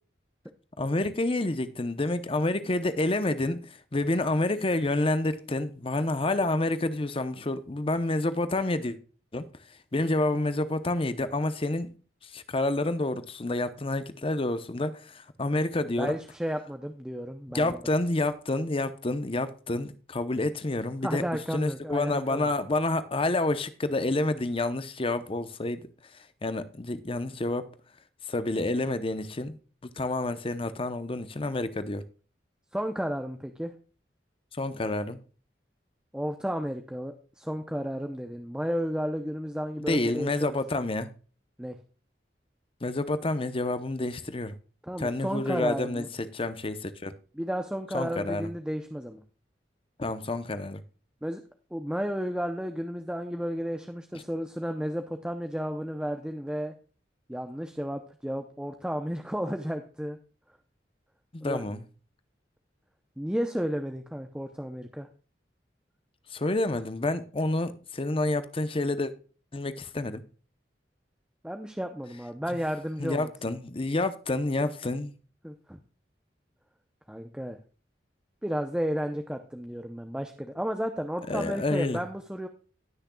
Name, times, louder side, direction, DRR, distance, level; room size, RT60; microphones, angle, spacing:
voice 1, 0.8-9.0 9.3-9.5 9.9-11.9 12.2-16.2 17.5-21.2 21.5-27.7 28.3-29.6 30.0-32.0 34.5-35.2 39.8-41.1 42.8-44.5 45.0-46.0 46.3-47.1 47.9-48.5 50.0-50.8 61.3-61.8 66.3-69.1 69.5-70.2 73.0-75.1 81.3-82.0, left 2 dB, 30° left, 0.8 m, -29 dB
voice 2, 16.0-17.8 21.0-22.5 32.7-33.7 36.1-40.6 41.6-41.8 44.8-46.1 47.3-49.2 51.2-51.4 51.7-56.7 57.3-60.2 61.4-61.7 63.2-65.1 71.4-73.3 75.4-75.8 77.1-77.6 78.4-82.5, equal, 5° right, 0.7 m, -33 dB
18.5 x 6.4 x 2.3 m
head